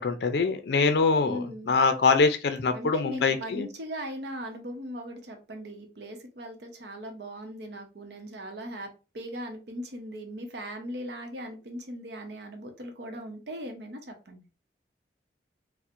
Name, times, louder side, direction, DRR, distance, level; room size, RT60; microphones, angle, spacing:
voice 1, 0.0-3.7, left 4 dB, 70° left, 0.4 m, -24 dB
voice 2, 1.2-1.8 2.7-14.4, equal, 75° right, 0.7 m, -39 dB
4.3 x 2.1 x 2.4 m
head